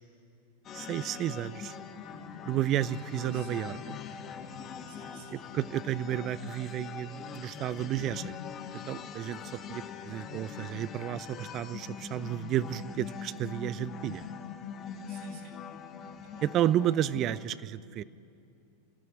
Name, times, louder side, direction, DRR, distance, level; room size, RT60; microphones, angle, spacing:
sound 1, 0.6-17.5, left 6 dB, 35° left, 1.6 m, -42 dB
voice 1, 0.7-1.7 2.5-4.0 5.3-8.3 8.7-9.4 9.7-14.3 16.4-18.0, right 12 dB, 40° right, 17 dB, 0.6 m, -32 dB
voice 2, 3.3-3.7 4.9-5.4 9.3-9.7 15.1-15.6 16.2-16.4, right 6 dB, 60° right, 0 dB, 6.1 m, -55 dB
29.0 x 14.0 x 9.3 m, 2.5 s
hypercardioid pair, 95°, 0 cm